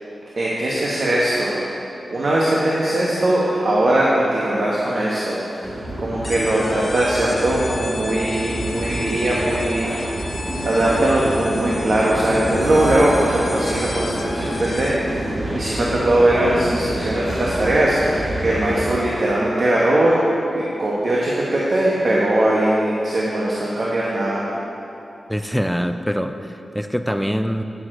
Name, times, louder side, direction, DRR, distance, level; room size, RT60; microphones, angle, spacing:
voice 1, 0.4-1.6 2.1-9.9 10.6-15.1 15.5-20.2 20.5-24.4, right 1 dB, 65° right, -6 dB, 1.1 m, -20 dB
sound 1, 5.6-19.0, right 1 dB, 45° right, 1.7 m, -28 dB
sound 2, 6.2-15.1, left 3 dB, 55° left, 0.6 m, -34 dB
voice 2, 25.3-27.6, equal, ahead, 7 dB, 0.4 m, -24 dB
9.6 x 6.3 x 3.8 m, 2.8 s
cardioid pair, 55°, 0 cm